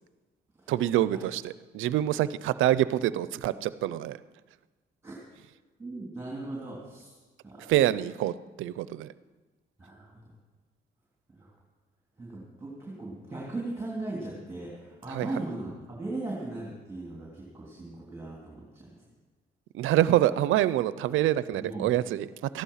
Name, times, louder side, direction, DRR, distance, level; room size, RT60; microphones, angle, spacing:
voice 1, 0.7-4.2 7.6-9.1 15.1-15.3 19.7-22.6, right 13 dB, 85° right, 17 dB, 0.5 m, -26 dB
voice 2, 5.8-7.1 7.4-7.7 9.8-10.2 11.3-11.5 12.2-19.0 21.5-21.9, right 2 dB, 10° right, -3 dB, 3.3 m, -38 dB
14.5 x 11.5 x 5.6 m, 1.3 s
cardioid pair, 90°, 20 cm